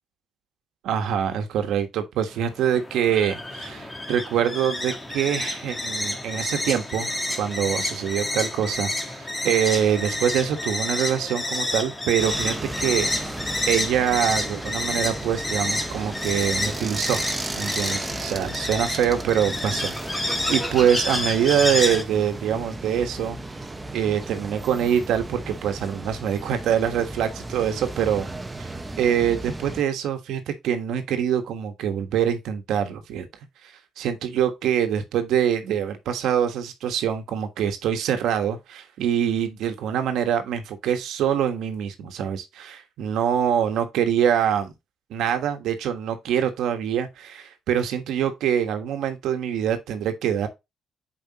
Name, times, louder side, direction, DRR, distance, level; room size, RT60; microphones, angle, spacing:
voice 1, 0.8-7.1 7.4-13.3 13.7-17.2 17.6-23.4 23.9-28.3 28.6-28.7 29.0-33.3 34.0-44.7 45.1-50.5, right 9 dB, 85° right, 1.3 m, -24 dB
sound 1, 2.3-22.0, left 1 dB, 15° left, 1.4 m, -29 dB
sound 2, 12.2-29.8, right 2 dB, 15° right, 0.9 m, -35 dB
7.5 x 4.9 x 2.9 m
cardioid pair, 90°, 0 cm